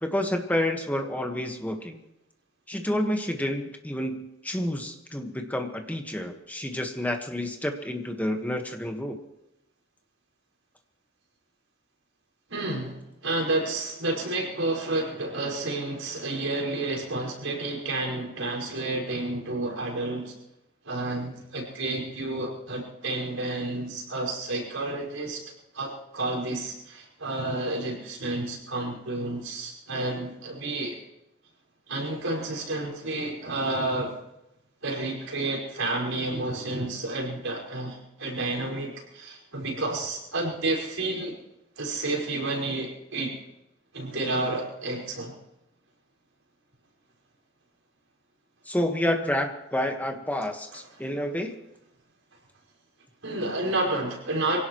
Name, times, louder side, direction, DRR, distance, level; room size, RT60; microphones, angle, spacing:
voice 1, 0.0-2.0 2.7-9.2 48.7-51.5, left 1 dB, 10° left, 4 dB, 1.5 m, -29 dB
voice 2, 12.5-20.3 20.8-25.4 25.7-31.0 31.9-34.1 34.8-41.3 41.8-43.4 43.9-45.3 53.2-54.6, right 2 dB, 85° right, -3 dB, 5.4 m, -30 dB
24.5 x 17.0 x 3.1 m, 0.88 s
head